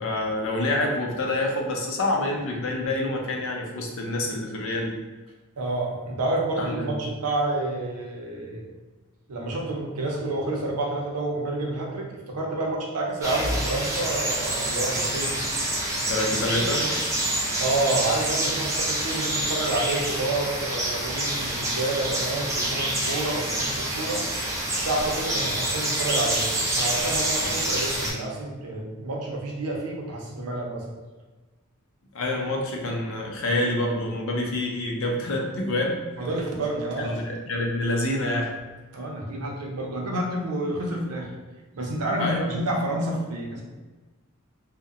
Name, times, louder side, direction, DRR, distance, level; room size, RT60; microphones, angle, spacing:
voice 1, 0.0-5.0 6.6-6.9 16.1-16.8 32.1-36.0 37.0-38.5 42.2-42.6, left 1 dB, 60° left, 0 dB, 0.5 m, -27 dB
voice 2, 5.6-8.6 9.3-15.3 16.6-16.9 17.6-24.2 24.7-30.8 36.2-37.2 38.9-41.3 41.7-43.6, right 2 dB, 90° right, -1 dB, 0.6 m, -29 dB
sound 1, 13.2-28.1, right 1 dB, 15° right, 0.3 m, -27 dB
2.8 x 2.1 x 2.4 m, 1.2 s
head